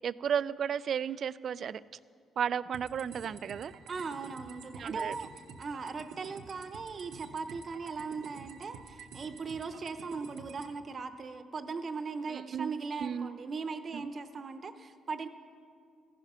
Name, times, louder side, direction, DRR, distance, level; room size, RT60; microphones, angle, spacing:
voice 1, 0.0-1.8 2.4-3.7 4.8-5.1 12.3-12.8 13.0-13.4 13.9-14.1, right 8 dB, 60° right, 18 dB, 0.3 m, -33 dB
sound 1, 2.7-10.7, right 5 dB, 80° right, 0.9 m, -49 dB
voice 2, 3.9-5.3 5.6-15.3, right 4 dB, 45° right, 10 dB, 0.8 m, -39 dB
14.5 x 10.5 x 5.6 m, 2.2 s
cardioid pair, 90°, 0 cm